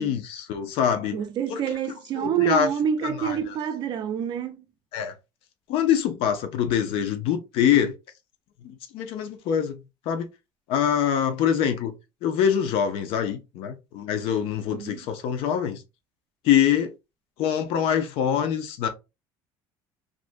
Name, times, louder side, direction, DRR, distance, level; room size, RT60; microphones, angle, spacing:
voice 1, 0.0-1.2 1.5-1.6 2.2-2.7 3.0-3.4 4.9-5.1 5.7-7.9 8.6-9.8 10.1-10.3 10.7-11.9 12.2-15.8 16.4-16.9 17.4-18.9, left 9 dB, 70° left, 0.6 m, -24 dB
voice 2, 1.1-4.7 14.7-15.0, right 9 dB, 50° right, 0.4 m, -27 dB
2.5 x 2.2 x 2.4 m
cardioid pair, 130°, 10 cm